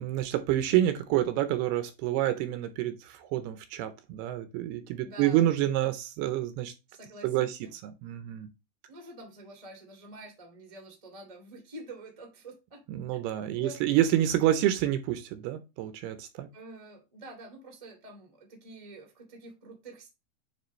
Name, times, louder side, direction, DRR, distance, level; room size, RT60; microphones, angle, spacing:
voice 1, 0.0-6.7 7.2-7.5 7.8-8.5 12.9-16.5, right 13 dB, 80° right, 2.6 m, -28 dB
voice 2, 5.0-5.5 6.9-7.7 8.9-12.8 13.1-14.0 16.5-20.1, right 1 dB, 20° right, 0.8 m, -47 dB
9.2 x 3.7 x 3.1 m
omnidirectional pair, 4.9 m